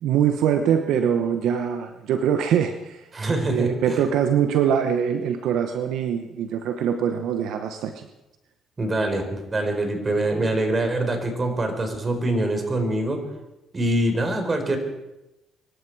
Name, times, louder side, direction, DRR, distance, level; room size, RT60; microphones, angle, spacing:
voice 1, 0.0-3.1 3.5-8.1, right 8 dB, 75° right, 7 dB, 1.0 m, -23 dB
voice 2, 3.1-4.0 8.8-13.2 13.7-14.8, right 1 dB, 30° right, 6 dB, 4.3 m, -24 dB
23.5 x 13.0 x 4.7 m, 0.97 s
supercardioid pair, 70°, 0 cm